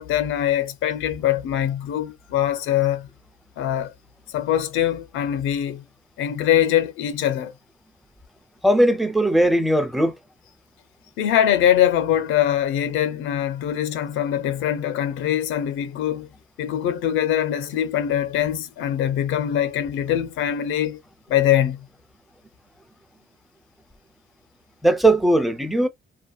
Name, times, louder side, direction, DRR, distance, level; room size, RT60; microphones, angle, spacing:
voice 1, 0.0-3.1 3.6-3.9 4.3-5.8 6.2-7.5 11.2-16.3 16.6-21.0 21.3-21.9, left 11 dB, 90° left, 0.5 m, -22 dB
voice 2, 8.6-10.1 24.8-25.9, right 1 dB, ahead, 0.6 m, -18 dB
2.8 x 2.2 x 2.3 m
cardioid pair, 90°, 20 cm